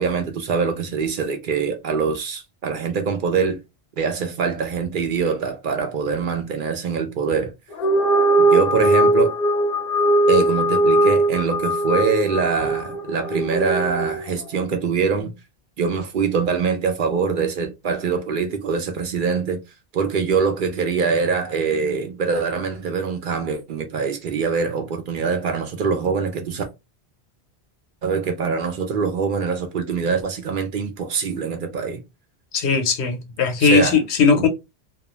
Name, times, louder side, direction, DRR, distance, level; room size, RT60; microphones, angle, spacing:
voice 1, 0.0-3.6 4.0-7.5 8.4-9.4 10.3-15.3 15.8-19.6 19.9-26.6 28.0-32.0 33.6-34.0 34.3-34.5, right 5 dB, 60° right, 0.6 m, -23 dB
sound 1, 7.7-14.3, right 1 dB, 65° left, 0.7 m, -19 dB
voice 2, 32.5-34.5, left 5 dB, 90° left, 0.9 m, -18 dB
2.3 x 2.3 x 2.9 m
omnidirectional pair, 1.1 m